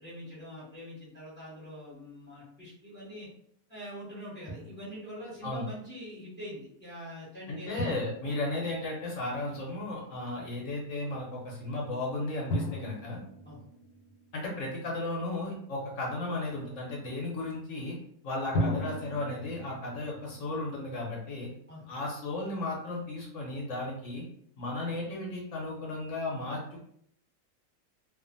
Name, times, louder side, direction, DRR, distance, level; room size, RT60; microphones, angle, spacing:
voice 1, 0.0-3.3 3.7-8.4 10.2-10.3 13.4-13.6 21.7-21.9 24.8-24.9, equal, 10° left, -8 dB, 0.9 m, -44 dB
Drum, 4.5-5.2 7.8-9.6 12.5-15.0 18.5-21.7, equal, 75° left, 1.2 m, -37 dB
voice 2, 7.5-13.2 14.3-17.9 18.2-21.5 21.9-24.2 24.6-26.8, left 2 dB, 60° left, -2 dB, 0.9 m, -35 dB
2.6 x 2.4 x 2.5 m, 0.67 s
omnidirectional pair, 1.8 m